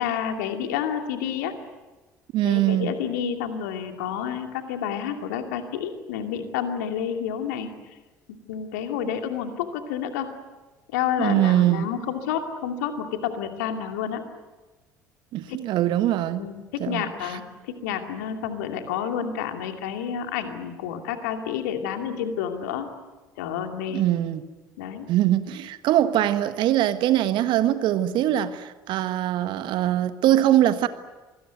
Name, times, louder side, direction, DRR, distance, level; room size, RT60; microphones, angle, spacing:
voice 1, 0.0-1.5 2.4-7.7 8.5-10.3 10.9-14.2 15.5-15.7 16.4-22.9 23.4-24.0 24.8-25.1, left 8 dB, 70° left, 2.6 m, -29 dB
voice 2, 2.3-2.9 11.2-11.9 15.3-16.4 16.8-17.1 23.9-24.5 25.1-30.9, right 13 dB, 55° right, 1.4 m, -22 dB
26.0 x 20.5 x 9.4 m
figure-of-eight pair, 60°, 10 cm